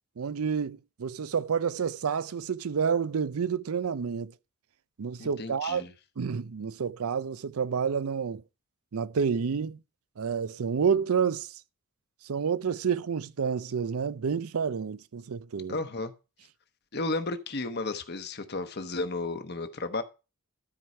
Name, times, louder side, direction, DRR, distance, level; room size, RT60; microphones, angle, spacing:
voice 1, 0.2-4.3 5.0-5.9 6.2-8.4 8.9-9.8 10.2-11.6 12.2-15.8, right 6 dB, 75° right, 0.5 m, -29 dB
voice 2, 5.2-5.9 15.7-16.1 16.9-20.0, left 2 dB, 45° left, 1.0 m, -33 dB
12.5 x 4.7 x 5.4 m
head